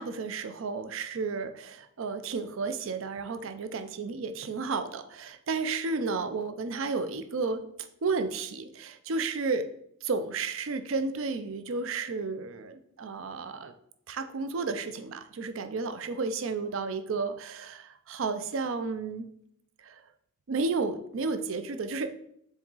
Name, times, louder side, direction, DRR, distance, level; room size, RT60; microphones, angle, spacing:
voice 1, 0.0-7.7 8.0-9.7 10.0-13.7 14.1-19.3 19.8-20.0 20.5-22.1, right 4 dB, 65° right, 9 dB, 0.5 m, -32 dB
7.1 x 3.9 x 3.8 m, 0.71 s
head